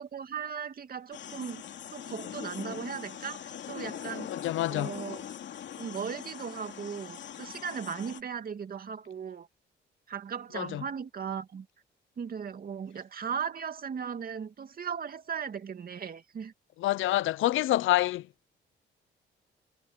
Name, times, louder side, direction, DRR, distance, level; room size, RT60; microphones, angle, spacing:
voice 1, 0.0-1.6 1.9-4.3 4.7-5.2 5.8-9.5 10.1-11.7 12.2-16.5, right 7 dB, 50° right, 2.4 m, -37 dB
sound 1, 1.1-8.2, left 9 dB, 65° left, 2.8 m, -42 dB
voice 2, 4.3-4.9 10.5-10.8 16.8-18.3, left 15 dB, 80° left, 0.8 m, -27 dB
cardioid pair, 90°, 20 cm